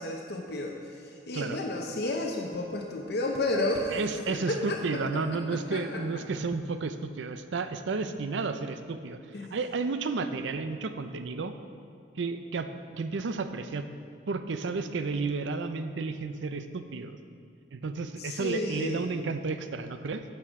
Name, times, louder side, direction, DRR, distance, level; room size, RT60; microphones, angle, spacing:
voice 1, 0.0-4.0 4.3-6.2 9.3-9.6 18.2-19.1, left 2 dB, 60° left, 0 dB, 0.7 m, -32 dB
voice 2, 3.9-9.2 9.5-11.5 12.2-13.9 14.3-17.2 17.7-20.2, right 4 dB, 80° right, 9 dB, 0.5 m, -32 dB
10.0 x 7.7 x 3.6 m, 2.2 s
head